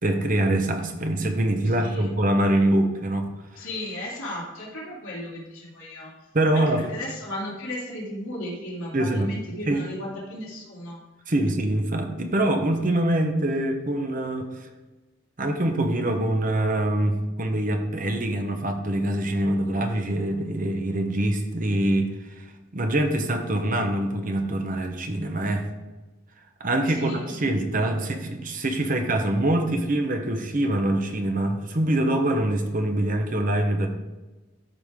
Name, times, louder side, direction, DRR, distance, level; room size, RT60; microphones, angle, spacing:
voice 1, 0.0-3.6 6.3-6.8 8.9-9.3 9.7-9.8 11.3-14.7 15.4-25.7 26.6-33.9, right 1 dB, 40° right, 4 dB, 0.9 m, -24 dB
voice 2, 1.6-2.1 3.5-6.1 6.5-11.0 26.9-27.5, left 1 dB, 75° left, -5 dB, 2.7 m, -35 dB
13.5 x 4.9 x 3.6 m, 1.2 s
head